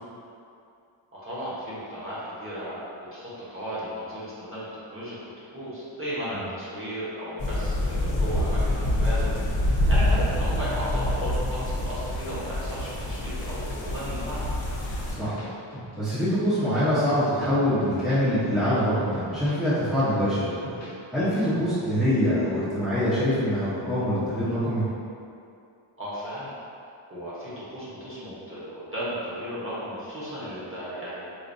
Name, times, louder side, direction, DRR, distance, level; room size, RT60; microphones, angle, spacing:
voice 1, 1.1-5.2 5.5-9.3 9.6-14.5 21.3-21.5 26.0-26.5 27.1-31.3, equal, 25° right, -10 dB, 1.0 m, -35 dB
sound 1, 7.4-15.2, left 1 dB, 65° left, 0.8 m, -26 dB
sound 2, 15.2-16.1 16.4-17.6 17.8-18.8 19.1-20.9 21.2-22.1, equal, 30° left, 1.0 m, -41 dB
voice 2, 15.9-20.4 21.1-24.8, equal, ahead, -13 dB, 0.8 m, -24 dB
4.7 x 2.5 x 2.6 m, 2.5 s
wide cardioid pair, 140°, 50 cm